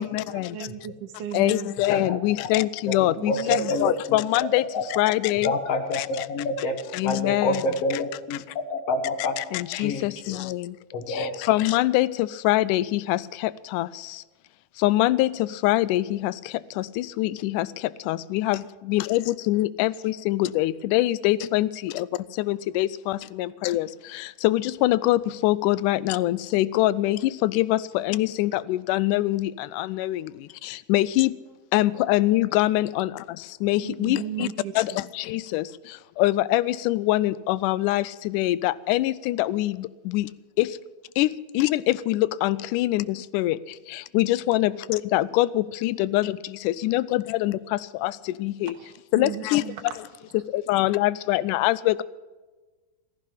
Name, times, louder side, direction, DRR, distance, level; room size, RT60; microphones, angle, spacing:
voice 1, 0.0-0.7 1.3-5.5 5.9-6.3 6.9-7.6 9.4-10.8 11.1-14.2 14.8-18.6 18.9-22.1 22.4-31.4 31.7-33.1 33.5-34.5 34.8-40.3 40.6-40.8 41.2-48.7 49.1-49.6 50.5-52.0, left 16 dB, 85° left, 2.1 m, -24 dB
voice 2, 0.5-1.8 3.2-3.7 33.8-34.8 48.7-49.8, right 10 dB, 80° right, 2.6 m, -35 dB
voice 3, 3.0-4.2 4.7-4.8 5.4-6.8 7.0-8.4 8.7-9.4 9.7-10.4 10.9-11.4, left 2 dB, 55° left, 2.2 m, -27 dB
15.5 x 15.0 x 5.7 m
omnidirectional pair, 3.6 m